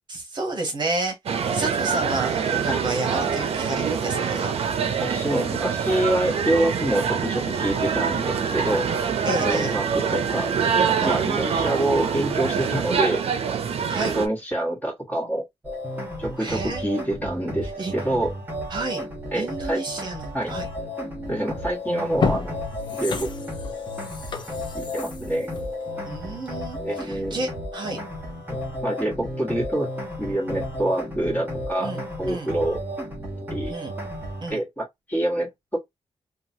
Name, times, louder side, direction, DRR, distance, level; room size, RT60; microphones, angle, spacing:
voice 1, 0.1-1.2 1.5-4.5 9.2-9.7 11.0-11.2 13.9-14.1 16.4-16.8 17.8-17.9 18.7-19.0 19.3-20.7 26.1-28.0 31.8-32.5 33.7-33.9 34.4-34.6, right 2 dB, 45° right, 0.9 m, -30 dB
sound 1, 1.3-14.3, right 6 dB, 70° right, 0.5 m, -25 dB
voice 2, 5.0-8.9 9.4-10.5 11.0-13.2 13.9-15.4 16.2-18.3 19.3-19.8 20.3-20.5 21.3-22.6 22.9-23.3 24.7-25.5 26.8-27.4 28.8-29.9 30.2-31.9 32.2-32.8 33.5-33.7 34.5-35.8, right 1 dB, 15° left, 1.4 m, -26 dB
sound 2, 15.6-34.5, left 1 dB, 20° right, 1.2 m, -33 dB
sound 3, 21.4-21.6 22.0-26.7 27.1-27.2, left 5 dB, 45° left, 0.6 m, -31 dB
2.8 x 2.3 x 2.7 m
wide cardioid pair, 140°, 11 cm